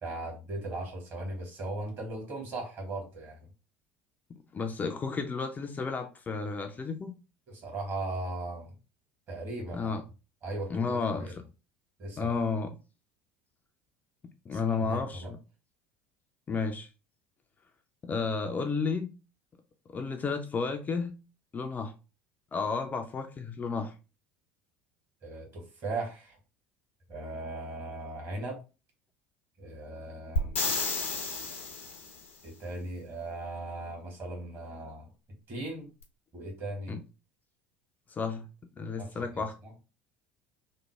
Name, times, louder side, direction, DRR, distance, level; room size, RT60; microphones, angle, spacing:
voice 1, 0.0-3.5 7.5-8.7 9.3-9.9 10.4-11.4 12.0-12.3 14.5-15.3 25.2-26.4 27.1-28.6 29.6-30.6 32.4-35.1 35.5-35.9 36.3-37.0 39.0-39.7, right 2 dB, 45° right, 1.7 m, -38 dB
voice 2, 4.5-7.1 9.7-10.0 10.7-11.4 12.2-12.8 14.5-15.4 16.5-16.9 18.0-19.1 19.9-21.2 21.5-21.9 22.5-23.9 36.9-37.0 38.1-38.5 38.8-39.6, left 4 dB, 25° left, 0.4 m, -32 dB
sound 1, 30.4-32.2 36.0-36.1, left 3 dB, 80° left, 0.6 m, -31 dB
3.1 x 2.1 x 3.3 m
figure-of-eight pair, 65°, 7 cm